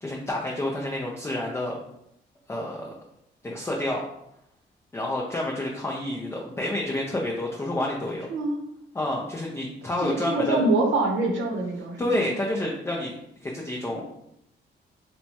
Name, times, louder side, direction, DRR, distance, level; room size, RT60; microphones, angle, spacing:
voice 1, 0.0-1.8 2.5-2.9 3.4-4.0 4.9-8.3 8.9-10.6 12.0-13.2 13.4-14.0, left 1 dB, 15° left, -2 dB, 0.4 m, -29 dB
voice 2, 10.0-12.0 13.9-14.0, right 2 dB, 70° right, 2 dB, 0.7 m, -25 dB
2.9 x 2.2 x 2.8 m, 0.79 s
cardioid pair, 90°, 20 cm